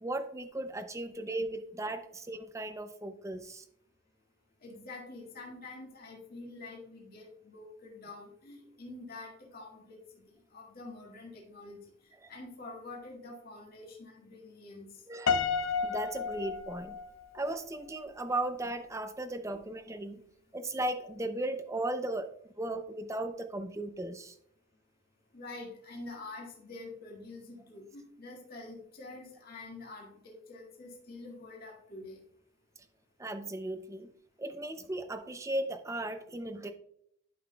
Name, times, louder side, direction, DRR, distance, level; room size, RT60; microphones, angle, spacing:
voice 1, 0.0-3.6 12.2-12.3 15.1-17.0 17.3-20.2 20.5-24.3 33.2-34.1 34.4-36.7, right 1 dB, 15° right, 9 dB, 0.5 m, -36 dB
voice 2, 4.6-10.2 10.5-11.8 12.3-14.9 25.3-32.2, left 2 dB, 50° left, -2 dB, 1.9 m, -47 dB
Piano, 15.3-17.5, left 5 dB, 75° left, 0.5 m, -31 dB
11.0 x 5.6 x 2.3 m, 0.70 s
head